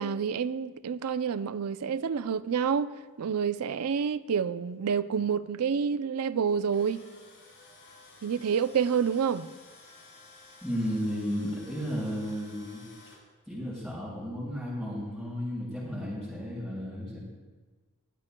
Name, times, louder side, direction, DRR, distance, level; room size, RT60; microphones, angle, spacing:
voice 1, 0.0-2.9 3.2-7.0 8.2-9.5, right 7 dB, 85° right, 0.5 m, -28 dB
Tools, 6.5-13.2, left 3 dB, 55° left, 3.2 m, -53 dB
voice 2, 10.6-12.8 13.5-17.2, equal, ahead, 4.4 m, -33 dB
19.5 x 13.0 x 2.2 m
head